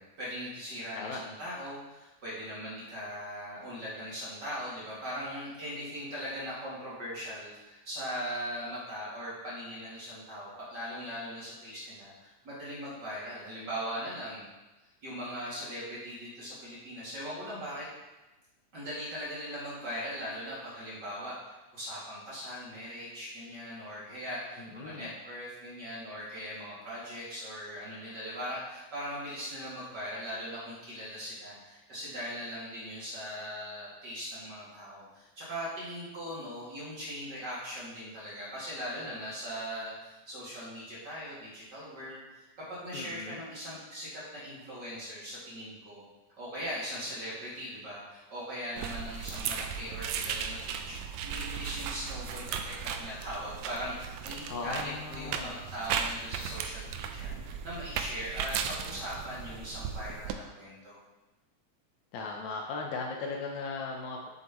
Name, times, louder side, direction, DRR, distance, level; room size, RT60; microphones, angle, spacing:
voice 1, 0.0-14.4 15.0-17.9 18.7-21.4 21.7-46.0 46.4-51.0 51.2-61.0, equal, 35° right, -8 dB, 2.7 m, -40 dB
voice 2, 24.6-25.1 42.9-43.4 54.5-55.5 62.1-64.3, left 4 dB, 75° left, 1 dB, 1.9 m, -37 dB
sound 1, 48.8-60.3, right 7 dB, 80° right, 1.7 m, -36 dB
7.9 x 7.5 x 3.1 m, 1.1 s
omnidirectional pair, 3.6 m